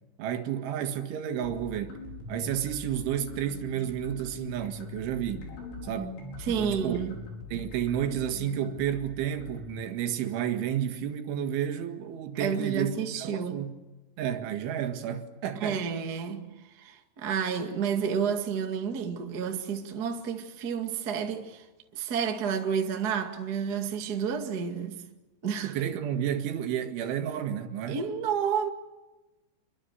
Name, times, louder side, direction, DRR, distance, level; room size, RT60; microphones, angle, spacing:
voice 1, 0.2-2.0 2.3-5.5 5.8-6.2 6.5-7.0 7.5-12.9 13.2-13.8 14.2-15.8 25.6-28.0, right 10 dB, 85° right, 4.2 m, -31 dB
sound 1, 1.4-9.8, left 3 dB, 80° left, 7.5 m, -43 dB
voice 2, 6.4-7.2 12.4-13.6 15.6-16.4 16.8-21.6 21.9-25.0 25.4-25.7 27.9-28.7, right 7 dB, 40° right, 1.3 m, -30 dB
27.5 x 23.5 x 8.1 m
omnidirectional pair, 5.3 m